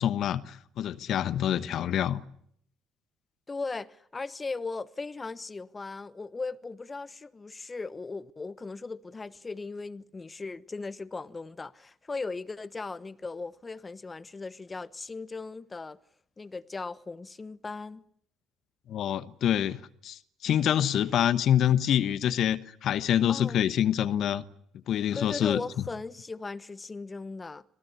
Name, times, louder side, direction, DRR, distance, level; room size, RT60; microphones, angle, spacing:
voice 1, 0.0-2.2 18.9-24.4 24.9-25.6, left 10 dB, 60° left, 1.1 m, -26 dB
voice 2, 3.5-16.0 16.4-18.0 23.3-23.6 25.1-27.6, left 3 dB, 25° left, 1.1 m, -38 dB
26.0 x 18.0 x 9.7 m
hypercardioid pair, 50°, 0 cm